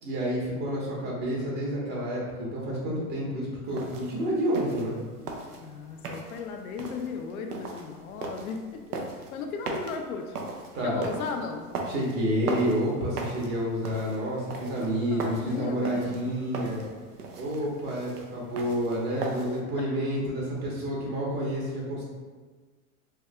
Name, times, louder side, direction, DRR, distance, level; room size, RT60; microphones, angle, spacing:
voice 1, 0.0-5.0 10.7-11.0 11.9-16.9 17.4-22.0, equal, 50° right, -4 dB, 1.2 m, -29 dB
sound 1, 3.7-19.6, right 3 dB, 85° right, 0.6 m, -39 dB
voice 2, 5.5-8.8 9.3-10.4 10.8-11.6 14.8-16.2 19.9-20.0, left 5 dB, 70° left, 5 dB, 0.6 m, -36 dB
4.7 x 2.7 x 2.2 m, 1.4 s
hypercardioid pair, 95°, 45 cm